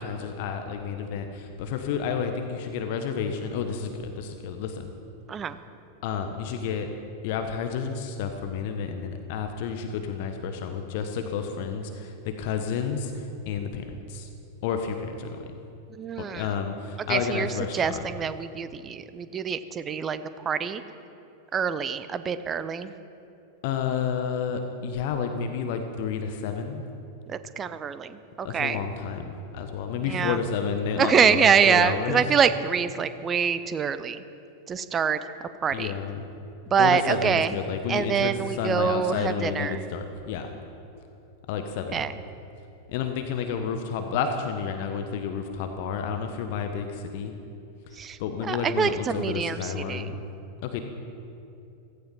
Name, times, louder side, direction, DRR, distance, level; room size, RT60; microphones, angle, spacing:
voice 1, 0.0-4.9 6.0-6.9 7.2-14.3 14.6-15.6 16.3-18.0 23.6-26.8 28.4-32.2 35.7-36.2 36.8-40.5 41.5-42.0 42.9-47.3 48.2-50.2 50.6-50.8, left 6 dB, 50° left, 6 dB, 1.2 m, -30 dB
voice 2, 15.9-16.5 17.1-20.8 21.5-22.9 27.3-28.8 30.0-30.4 31.0-34.2 34.7-35.2 35.6-35.9 36.7-37.6 37.9-39.9 41.9-42.1 47.9-50.1, right 7 dB, 25° right, 13 dB, 0.8 m, -25 dB
16.5 x 15.0 x 5.7 m, 2.8 s
figure-of-eight pair, 90°, 0 cm